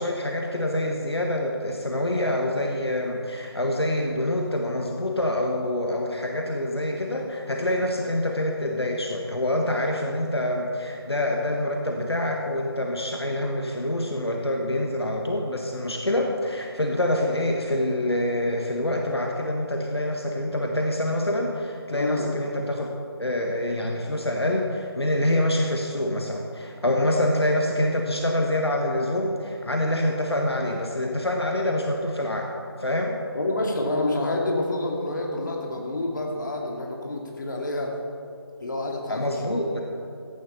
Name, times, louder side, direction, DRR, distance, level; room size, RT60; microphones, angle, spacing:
voice 1, 0.0-22.9 23.2-32.5 32.8-33.2 39.1-39.8, left 1 dB, 75° left, 1 dB, 1.5 m, -26 dB
voice 2, 21.9-22.3 33.3-38.0 38.6-39.6, left 2 dB, 50° left, 0 dB, 2.3 m, -28 dB
15.5 x 11.0 x 4.3 m, 2.5 s
figure-of-eight pair, 155°, 13 cm